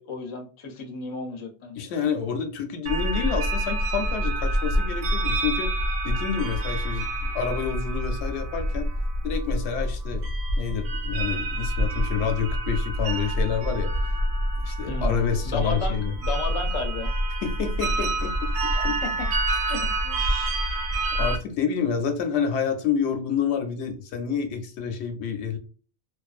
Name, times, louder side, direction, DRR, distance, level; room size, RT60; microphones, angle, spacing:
voice 1, 0.0-2.0 14.9-15.1 15.4-17.1 18.7-19.3 19.7-20.6, left 3 dB, 40° left, 4 dB, 0.5 m, -34 dB
voice 2, 1.8-5.7 6.0-8.9 9.2-10.2 10.6-14.1 14.6-16.1 17.4-18.5 18.8-18.9 21.1-25.6, left 7 dB, 85° left, 7 dB, 0.9 m, -28 dB
sound 1, 2.9-21.4, right 1 dB, 85° right, 0.9 m, -27 dB
2.5 x 2.3 x 2.3 m, 0.38 s
omnidirectional pair, 1.1 m